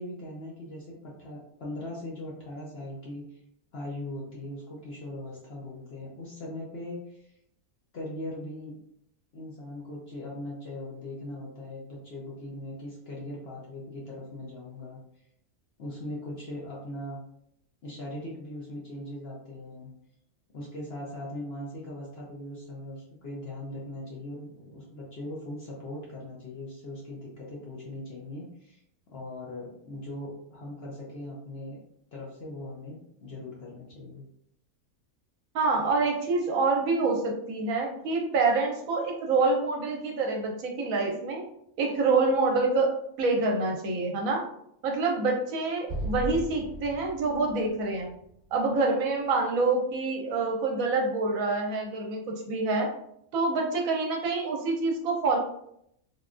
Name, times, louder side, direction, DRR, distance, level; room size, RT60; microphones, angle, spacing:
voice 1, 0.0-3.4 3.7-7.4 7.9-8.7 9.3-15.0 15.8-17.2 17.8-19.9 20.5-28.8 29.1-31.8 32.1-34.2, left 1 dB, 55° left, -4 dB, 0.8 m, -40 dB
voice 2, 35.5-41.4 41.8-44.4 44.8-48.1 48.5-52.9 53.3-55.4, right 3 dB, 70° right, 1 dB, 1.0 m, -26 dB
Explosion, 45.9-49.2, right 2 dB, 35° right, 1.4 m, -37 dB
3.5 x 2.2 x 2.4 m, 0.73 s
omnidirectional pair, 1.5 m